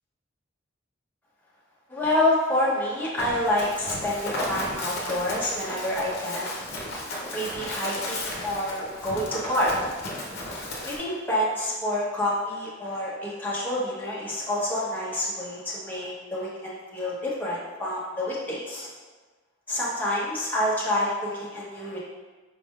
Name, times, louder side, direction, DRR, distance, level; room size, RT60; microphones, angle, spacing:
voice 1, 1.9-6.6 7.3-9.7 10.8-18.9 19.7-22.0, left 1 dB, 10° left, -7 dB, 1.0 m, -28 dB
Run, 3.2-11.0, left 1 dB, 55° left, 0.8 m, -34 dB
5.1 x 3.4 x 2.4 m, 1.3 s
head